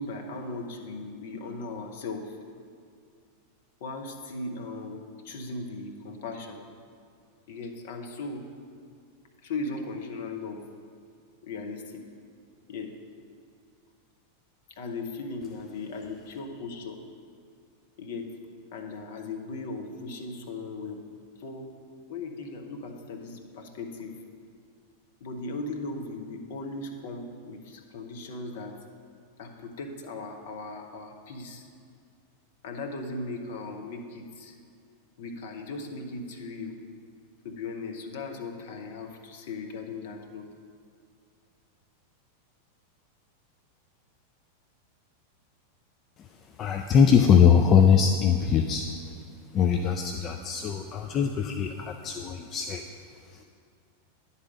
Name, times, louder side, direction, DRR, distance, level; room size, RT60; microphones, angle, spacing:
voice 1, 0.0-2.4 3.8-6.6 7.5-8.5 9.4-10.7 11.4-12.0 12.7-13.0 14.7-17.0 18.0-18.4 18.7-21.0 21.4-21.7 22.1-24.2 25.2-28.8 29.4-31.7 32.6-34.6 35.2-36.8 37.4-40.5, left 3 dB, 55° left, 4 dB, 0.8 m, -37 dB
voice 2, 46.6-48.9 49.5-52.8 53.2-53.4, left 7 dB, 30° left, 5 dB, 0.4 m, -22 dB
9.8 x 4.1 x 6.2 m, 2.2 s
figure-of-eight pair, 90°, 0 cm